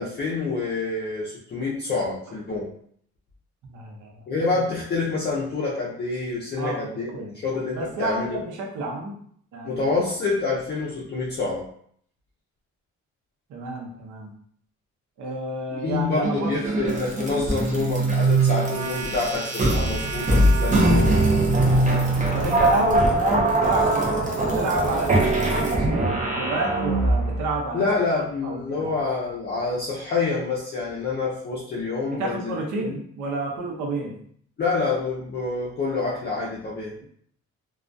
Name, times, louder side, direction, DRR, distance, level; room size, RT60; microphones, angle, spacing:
voice 1, 0.0-2.7 4.3-7.1 7.4-8.4 9.6-11.7 15.8-21.2 27.7-33.0 34.6-36.9, left 3 dB, 35° left, -5 dB, 0.6 m, -27 dB
voice 2, 3.7-4.2 6.6-6.8 7.1-7.3 7.7-9.1 9.5-9.9 13.5-14.3 15.2-16.6 22.3-27.9 28.4-28.9 32.1-34.2, right 2 dB, 80° right, 0 dB, 0.7 m, -30 dB
sound 1, 16.2-27.5, right 2 dB, 25° right, 0.6 m, -22 dB
2.2 x 2.2 x 2.5 m, 0.63 s
cardioid pair, 90°, 30 cm